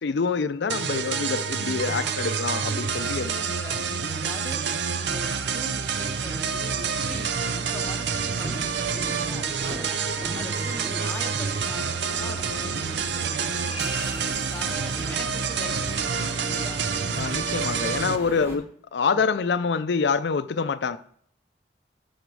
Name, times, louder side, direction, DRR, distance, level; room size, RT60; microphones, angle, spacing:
voice 1, 0.0-3.3 17.2-18.6 18.9-21.0, left 5 dB, 75° left, 0.5 m, -26 dB
sound 1, 0.7-18.2, right 6 dB, 75° right, 0.6 m, -28 dB
voice 2, 3.0-3.8 4.1-4.6 5.0-10.0 10.3-16.9 18.4-18.7 19.1-19.3, left 1 dB, 10° left, 0.7 m, -41 dB
sound 2, 3.5-18.5, equal, 30° right, 3.9 m, -50 dB
sound 3, 6.1-18.6, equal, 15° right, 1.6 m, -42 dB
12.0 x 4.3 x 6.2 m
head